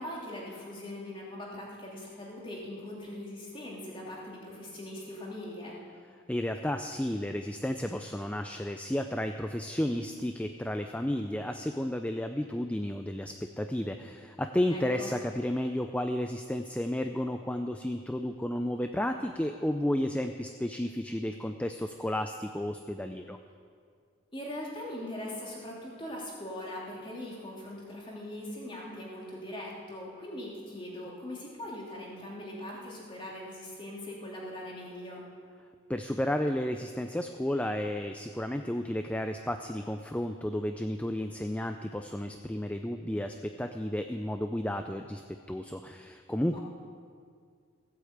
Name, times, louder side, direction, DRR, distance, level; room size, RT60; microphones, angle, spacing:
voice 1, 0.0-5.8 14.7-15.1 24.3-35.2 46.5-46.6, left 1 dB, 25° left, -4 dB, 2.9 m, -41 dB
voice 2, 6.3-23.4 35.9-46.6, left 1 dB, 5° left, 6 dB, 0.4 m, -32 dB
16.0 x 8.5 x 8.0 m, 2.1 s
head